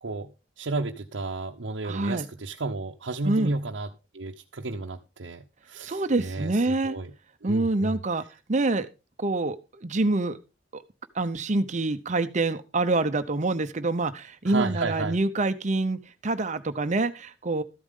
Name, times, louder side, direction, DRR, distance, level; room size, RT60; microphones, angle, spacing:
voice 1, 0.0-7.1 7.4-8.3 14.5-15.2, right 3 dB, 75° right, 1 dB, 0.8 m, -33 dB
voice 2, 1.8-2.3 3.2-3.5 5.8-7.0 7.4-8.2 8.5-8.9 9.2-10.4 10.7-10.8 11.1-17.6, right 2 dB, 40° right, 10 dB, 0.7 m, -26 dB
13.5 x 8.6 x 3.7 m, 0.29 s
head